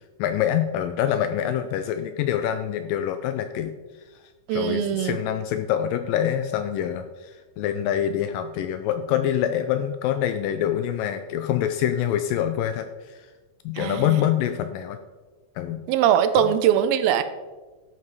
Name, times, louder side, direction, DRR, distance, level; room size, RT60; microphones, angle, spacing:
voice 1, 0.2-3.8 4.1-4.2 4.5-13.3 13.7-15.0 15.6-15.8 16.4-16.5, left 10 dB, 85° left, 9 dB, 2.0 m, -25 dB
voice 2, 4.5-5.2 13.8-14.2 15.9-17.2, right 10 dB, 85° right, 11 dB, 2.5 m, -21 dB
12.0 x 5.4 x 4.7 m, 1.3 s
omnidirectional pair, 4.3 m